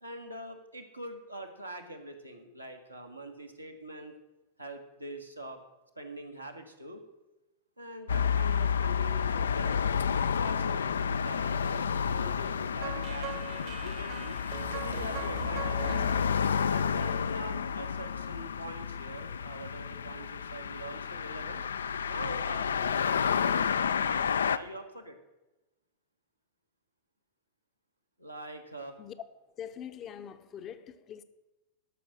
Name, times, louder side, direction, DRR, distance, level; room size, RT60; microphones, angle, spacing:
voice 1, 0.0-4.1 4.6-5.6 6.0-7.0 7.8-14.3 14.7-16.0 16.6-21.6 22.1-25.2 28.2-29.0, right 1 dB, 90° right, 1.3 m, -44 dB
sound 1, 8.1-24.6, left 7 dB, 70° left, 0.3 m, -30 dB
sound 2, 12.8-17.8, right 9 dB, 45° right, 1.0 m, -42 dB
voice 2, 29.6-31.2, left 9 dB, 30° left, 0.7 m, -43 dB
12.5 x 5.9 x 6.2 m
figure-of-eight pair, 90°, 0 cm